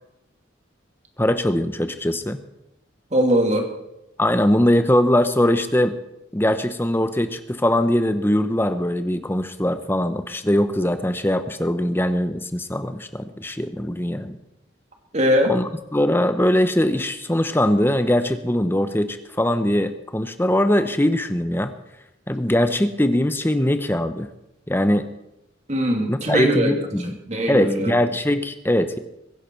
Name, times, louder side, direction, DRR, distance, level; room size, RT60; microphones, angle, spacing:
voice 1, 1.2-2.4 4.2-5.9 6.3-14.4 15.5-21.7 22.3-24.3 24.7-25.1 26.1-27.1 27.5-29.0, left 1 dB, 10° left, 10 dB, 0.8 m, -21 dB
voice 2, 3.1-3.7 15.1-15.5 25.7-26.8 27.3-27.9, equal, 35° right, 3 dB, 2.5 m, -20 dB
22.5 x 10.5 x 4.6 m, 0.86 s
head